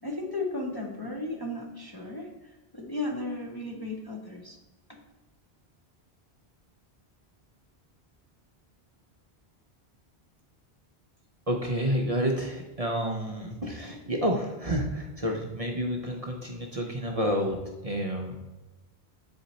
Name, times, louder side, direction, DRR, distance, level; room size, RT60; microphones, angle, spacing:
voice 1, 0.0-4.6 4.9-5.0, left 2 dB, 25° left, -1 dB, 0.7 m, -35 dB
voice 2, 11.5-18.3, equal, 40° right, 1 dB, 0.6 m, -29 dB
7.7 x 4.3 x 4.0 m, 1.1 s
omnidirectional pair, 1.1 m